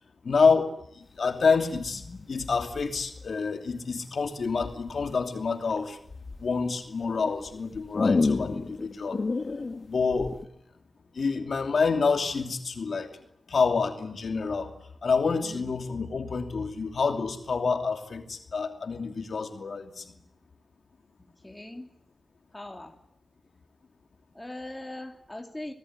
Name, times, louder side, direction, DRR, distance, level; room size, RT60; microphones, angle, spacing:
voice 1, 0.2-2.0 2.3-6.0 6.4-9.2 9.9-10.4 11.1-13.1 13.5-14.7 15.0-20.2, left 4 dB, 70° left, 5 dB, 2.9 m, -27 dB
sound 1, 1.7-3.6 4.6-5.1 5.6-6.4 7.0-10.4, left 3 dB, 50° left, 1.8 m, -31 dB
voice 2, 15.4-15.7 21.4-21.9 22.5-22.9 24.3-25.7, left 1 dB, 10° left, 4 dB, 2.9 m, -40 dB
27.5 x 19.0 x 9.8 m, 0.73 s
wide cardioid pair, 95°, 0 cm